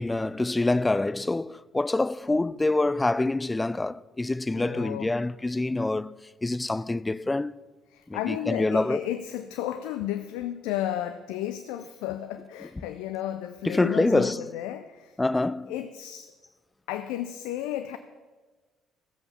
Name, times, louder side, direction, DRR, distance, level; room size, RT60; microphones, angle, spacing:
voice 1, 0.0-6.2 6.4-7.5 8.1-9.0 13.6-14.5 15.2-15.7, left 2 dB, 20° left, 0.3 m, -26 dB
voice 2, 4.5-5.1 7.9-15.2 15.7-16.3 16.9-18.0, left 12 dB, 75° left, 0.5 m, -33 dB
14.0 x 7.9 x 5.7 m
hypercardioid pair, 50°, 0 cm